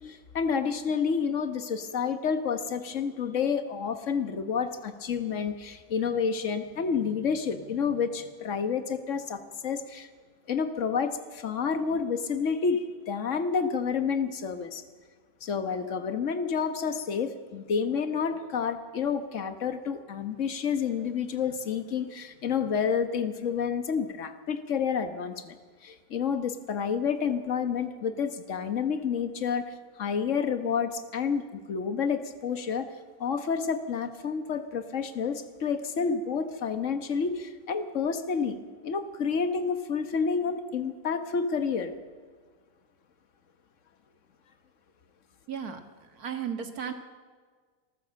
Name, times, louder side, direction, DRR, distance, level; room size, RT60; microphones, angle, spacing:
voice 1, 0.0-10.1 10.5-14.8 15.4-25.6 25.8-32.9 33.2-41.9, left 6 dB, 55° left, 8 dB, 1.6 m, -29 dB
voice 2, 45.5-46.9, right 7 dB, 85° right, 6 dB, 2.1 m, -35 dB
26.5 x 14.0 x 7.7 m, 1.6 s
omnidirectional pair, 1.6 m